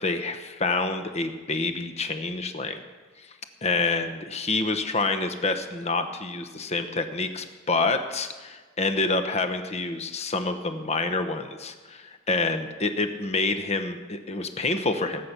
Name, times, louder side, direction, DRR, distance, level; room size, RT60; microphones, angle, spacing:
voice 1, 0.0-2.8 3.2-3.3 3.6-15.3, left 3 dB, 30° left, 8 dB, 0.9 m, -27 dB
19.5 x 8.2 x 6.0 m, 1.4 s
head